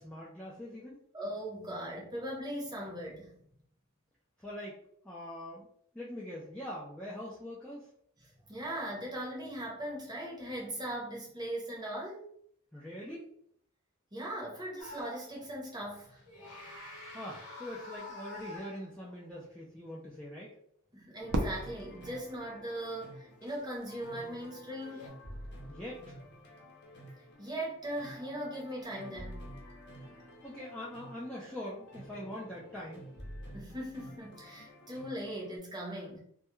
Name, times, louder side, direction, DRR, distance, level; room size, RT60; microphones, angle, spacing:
voice 1, 0.0-1.0 4.4-4.8 5.0-5.7 5.9-7.9 12.7-13.3 17.1-20.5 25.7-26.2 30.0-33.0, left 1 dB, 5° left, -7 dB, 0.3 m, -43 dB
voice 2, 1.1-3.3 8.2-12.3 14.1-16.2 20.9-25.1 27.4-29.5 33.5-36.2, right 1 dB, 20° right, -3 dB, 0.7 m, -39 dB
sound 1, 14.8-15.5 16.2-19.2 23.4-23.6 24.8-25.1, left 2 dB, 85° left, 0.8 m, -48 dB
sound 2, 21.2-35.6, equal, 50° left, 0.7 m, -49 dB
Fireworks, 21.3-23.5, right 1 dB, 65° right, 0.5 m, -37 dB
2.2 x 2.1 x 2.9 m, 0.66 s
head